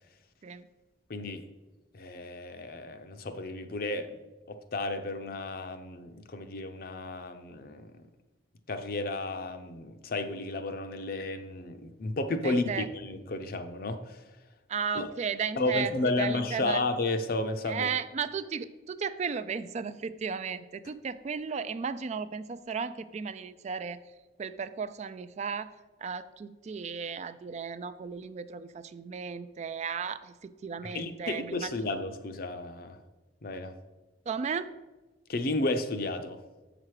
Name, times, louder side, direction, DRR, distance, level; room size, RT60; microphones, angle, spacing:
voice 1, 1.1-1.4 1.9-4.2 4.5-7.9 8.7-14.2 14.9-15.1 15.6-17.9 30.8-33.0 33.4-33.7 35.3-36.4, left 2 dB, 55° left, 8 dB, 0.6 m, -32 dB
voice 2, 12.4-12.9 14.7-16.8 17.6-24.0 24.4-25.7 26.0-32.0 34.3-34.7, right 6 dB, 40° right, 13 dB, 0.3 m, -35 dB
7.6 x 6.0 x 4.8 m, 1.2 s
head